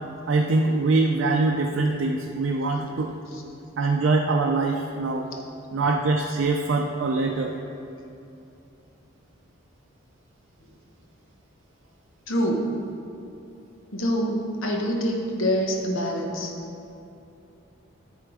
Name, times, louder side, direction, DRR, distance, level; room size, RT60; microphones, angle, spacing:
voice 1, 0.3-3.1 3.8-5.3 5.7-7.6, right 3 dB, 65° right, 1 dB, 0.4 m, -23 dB
voice 2, 12.3-12.8 13.9-16.5, equal, 75° left, 1 dB, 0.9 m, -25 dB
9.6 x 3.8 x 4.7 m, 2.8 s
head